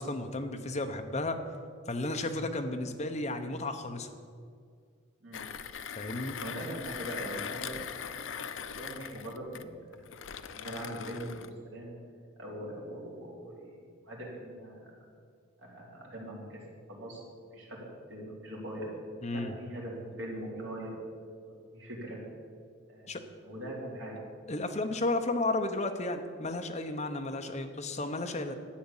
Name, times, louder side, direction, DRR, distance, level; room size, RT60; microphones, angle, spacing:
voice 1, 0.0-1.4 1.9-4.1 6.0-6.4 19.2-19.5 23.1-23.2 24.5-28.5, left 2 dB, 35° left, 5 dB, 0.9 m, -33 dB
Mechanisms, 5.3-11.5, left 7 dB, 65° left, 0.5 m, -41 dB
voice 2, 6.4-7.8 8.3-9.9 10.5-12.0 12.4-14.9 15.6-16.6 16.9-17.2 17.5-18.9 19.3-20.9 21.4-22.2 22.9-23.1 23.4-24.2, right 1 dB, 60° right, -4 dB, 3.7 m, -41 dB
11.5 x 8.6 x 7.3 m, 2.1 s
head